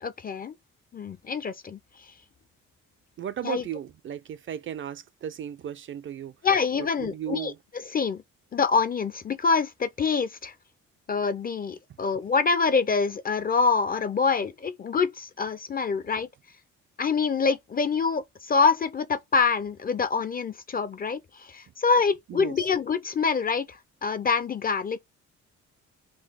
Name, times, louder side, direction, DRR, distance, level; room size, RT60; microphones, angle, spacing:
voice 1, 0.0-0.6 0.9-1.8 3.4-3.6 6.4-7.5 7.9-8.2 8.5-10.5 11.1-16.3 17.0-25.0, left 5 dB, 30° left, 0.4 m, -25 dB
voice 2, 3.2-6.3 6.8-7.6 22.3-22.7, right 10 dB, 40° right, 0.4 m, -35 dB
3.8 x 2.3 x 3.5 m
cardioid pair, 90°, 30 cm